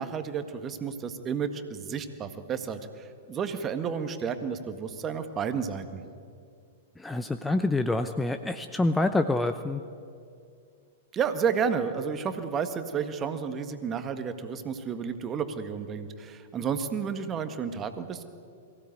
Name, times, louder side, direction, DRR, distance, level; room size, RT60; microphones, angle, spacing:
voice 1, 0.0-6.0 11.1-18.2, right 6 dB, 25° right, 9 dB, 1.7 m, -31 dB
voice 2, 7.0-9.8, left 2 dB, 10° left, 9 dB, 0.8 m, -27 dB
22.5 x 16.0 x 9.3 m, 2.3 s
figure-of-eight pair, 105°, 0 cm